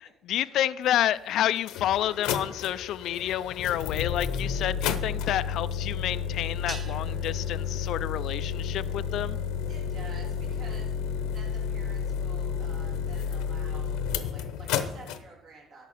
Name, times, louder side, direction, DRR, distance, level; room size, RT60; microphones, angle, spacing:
voice 1, 0.2-9.4, left 12 dB, 70° left, 15 dB, 0.3 m, -29 dB
sound 1, 0.9-1.0 1.6-15.2, left 7 dB, 85° left, 0.8 m, -31 dB
sound 2, 6.7-9.1, right 4 dB, 35° right, 1.0 m, -46 dB
voice 2, 9.7-15.9, right 3 dB, 55° right, -2 dB, 3.0 m, -50 dB
11.5 x 6.6 x 5.6 m, 0.84 s
supercardioid pair, 85°, 0 cm